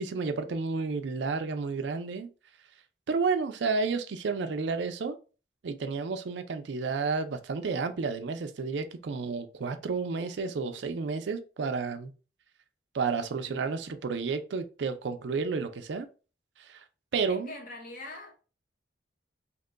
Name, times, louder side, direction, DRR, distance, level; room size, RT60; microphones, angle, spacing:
voice 1, 0.0-2.3 3.1-5.2 5.6-12.1 12.9-16.1 16.7-16.8 17.1-17.5, right 4 dB, 75° right, 0.4 m, -31 dB
voice 2, 17.3-18.4, left 2 dB, 45° left, 0.8 m, -42 dB
2.9 x 2.2 x 3.7 m
head